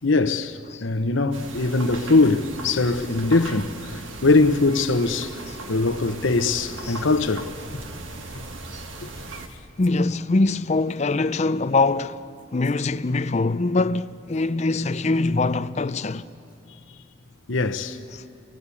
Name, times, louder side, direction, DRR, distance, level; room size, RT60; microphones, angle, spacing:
voice 1, 0.0-5.4 5.7-7.5 9.0-9.1 17.5-18.0, left 3 dB, 75° left, 1.0 m, -21 dB
sound 1, 1.3-9.5, right 2 dB, 80° right, 1.6 m, -38 dB
voice 2, 9.8-12.2 12.5-16.3 18.1-18.2, left 3 dB, 35° left, 0.5 m, -23 dB
28.0 x 19.0 x 8.5 m
head